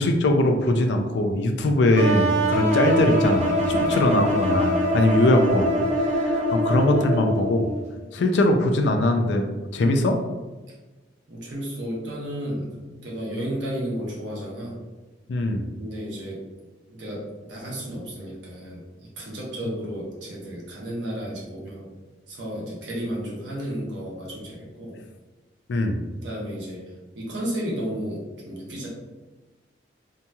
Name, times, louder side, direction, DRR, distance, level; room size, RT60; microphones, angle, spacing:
voice 1, 0.0-5.7 6.0-7.7 8.1-9.5 9.7-10.2 15.3-15.7 25.7-26.0, left 1 dB, 70° left, 5 dB, 0.4 m, -21 dB
sound 1, 1.9-7.8, equal, 40° right, 0.6 m, -23 dB
voice 2, 3.8-4.2 11.3-14.8 15.8-16.4 16.9-21.9 22.3-25.0 26.2-26.8 27.1-28.9, equal, 80° right, -5 dB, 1.0 m, -33 dB
2.9 x 2.7 x 2.2 m, 1.2 s
head